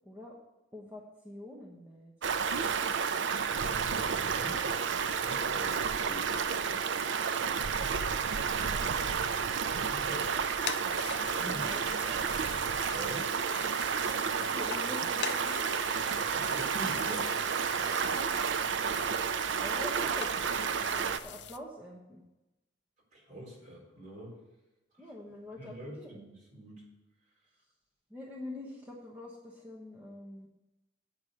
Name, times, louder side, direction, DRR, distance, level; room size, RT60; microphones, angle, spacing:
voice 1, 0.0-0.3 0.7-2.1 8.5-9.0 10.3-10.5 11.4-12.3 14.3-15.6 17.9-18.3 19.6-22.2 25.0-26.2 28.1-30.5, left 1 dB, 10° right, -3 dB, 1.1 m, -45 dB
Stream, 2.2-21.2, right 6 dB, 90° right, 0.5 m, -31 dB
voice 2, 3.4-4.9 5.2-6.3 9.6-10.3 11.4-11.7 12.9-13.3 16.2-17.3 23.1-24.4 24.9-25.1 25.6-26.2 26.5-26.8, right 1 dB, 45° right, -4 dB, 4.2 m, -44 dB
sound 1, 10.0-21.6, left 9 dB, 65° left, 0.4 m, -44 dB
8.7 x 6.1 x 7.9 m, 0.98 s
head